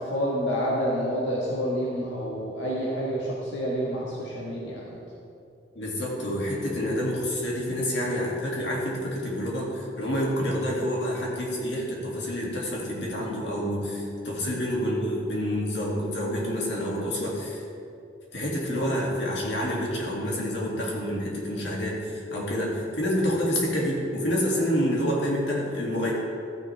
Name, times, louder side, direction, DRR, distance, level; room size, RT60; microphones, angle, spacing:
voice 1, 0.0-5.0, equal, 85° left, -5 dB, 1.5 m, -28 dB
voice 2, 5.7-17.6 18.3-26.1, equal, 65° left, -4 dB, 2.3 m, -28 dB
13.5 x 9.0 x 3.4 m, 2.6 s
head